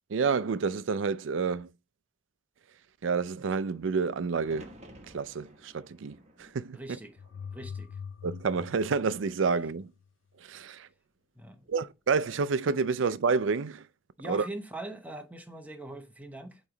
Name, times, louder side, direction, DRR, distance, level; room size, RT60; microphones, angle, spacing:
voice 1, 0.1-1.7 3.0-4.7 5.1-6.8 8.2-9.9 10.4-10.9 11.7-13.8 14.3-14.5, right 5 dB, 75° right, 0.4 m, -29 dB
sound 1, 4.4-8.4 8.8-9.6 11.4-11.9, right 1 dB, 35° right, 1.1 m, -54 dB
voice 2, 6.7-7.2 7.5-8.0 11.3-11.6 14.2-16.6, right 1 dB, 10° right, 0.8 m, -41 dB
sound 2, 7.2-10.1, left 6 dB, 75° left, 0.4 m, -43 dB
8.4 x 3.1 x 3.8 m
head